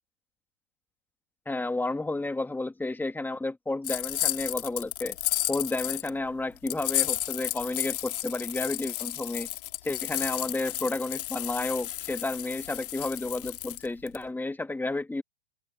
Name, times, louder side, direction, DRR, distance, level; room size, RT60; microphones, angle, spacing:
voice 1, 1.5-5.2 5.5-9.5 9.8-15.2, left 2 dB, 5° left, 1.9 m, -31 dB
sound 1, 3.8-6.1 6.7-14.2, left 15 dB, 65° left, 2.7 m, -32 dB
hypercardioid pair, 100°, 29 cm